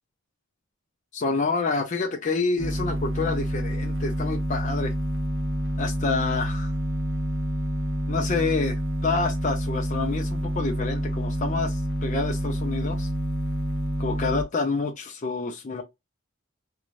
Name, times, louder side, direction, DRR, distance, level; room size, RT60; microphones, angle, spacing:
voice 1, 1.1-4.9 5.8-6.7 8.1-13.1 14.0-15.8, left 4 dB, 35° left, 0.4 m, -28 dB
sound 1, 2.6-14.4, equal, 70° right, 0.6 m, -28 dB
2.5 x 2.1 x 3.0 m
head